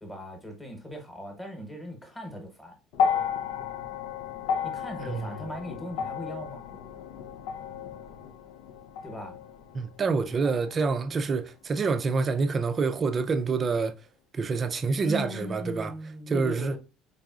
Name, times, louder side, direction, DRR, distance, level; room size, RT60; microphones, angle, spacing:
voice 1, 0.0-2.8 4.6-6.7 9.0-9.3 15.0-16.8, equal, 5° left, 1.0 m, -38 dB
sound 1, 2.9-11.3 12.3-12.4, left 7 dB, 80° left, 0.5 m, -33 dB
voice 2, 5.0-5.4 9.7-13.9 14.3-15.9 16.3-16.8, right 4 dB, 25° right, 0.4 m, -27 dB
3.9 x 3.5 x 2.3 m
cardioid pair, 165°, 0 cm